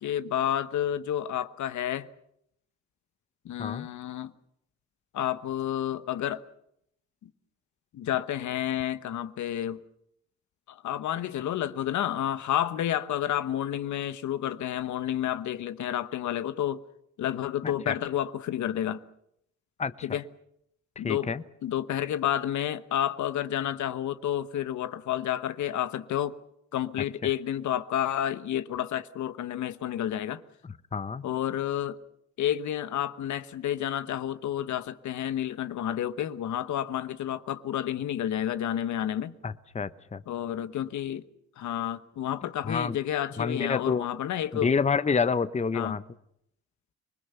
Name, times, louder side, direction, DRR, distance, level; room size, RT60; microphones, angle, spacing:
voice 1, 0.0-2.1 3.4-4.3 5.1-6.4 7.2-7.3 7.9-9.8 10.7-16.8 17.2-19.0 20.0-20.2 21.0-21.3 21.6-26.3 26.7-30.4 31.2-32.0 32.4-39.3 40.3-41.3 41.6-44.7 45.7-46.0, left 11 dB, 70° left, 1.1 m, -30 dB
voice 2, 17.6-17.9 19.8-20.1 21.0-21.4 30.9-31.3 39.4-40.2 42.6-43.0 43.4-44.1 44.6-46.0, left 5 dB, 25° left, 0.9 m, -28 dB
26.0 x 20.5 x 7.0 m
cardioid pair, 90°, 30 cm